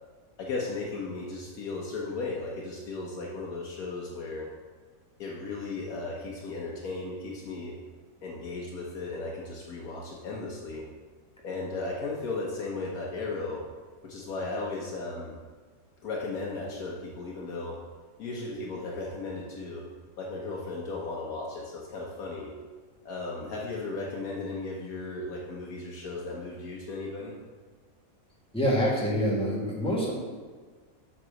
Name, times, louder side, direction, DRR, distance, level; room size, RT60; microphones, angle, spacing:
voice 1, 0.4-4.5 5.2-7.8 8.2-10.9 11.4-13.7 14.0-15.4 16.0-17.8 18.2-19.8 20.2-22.5 23.0-27.3, left 3 dB, 80° left, -3 dB, 1.4 m, -35 dB
voice 2, 28.5-30.1, equal, 5° left, -5 dB, 1.7 m, -26 dB
7.6 x 4.0 x 6.4 m, 1.4 s
omnidirectional pair, 1.5 m